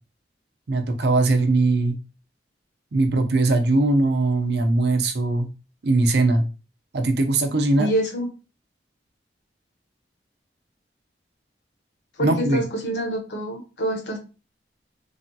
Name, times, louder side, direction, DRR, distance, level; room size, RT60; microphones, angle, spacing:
voice 1, 0.7-2.0 2.9-5.5 5.8-6.4 6.9-7.9 12.2-12.6, right 2 dB, 65° right, 6 dB, 0.5 m, -20 dB
voice 2, 7.8-8.3 12.2-14.2, right 1 dB, 80° left, 2 dB, 0.8 m, -26 dB
3.3 x 2.3 x 2.6 m, 0.32 s
head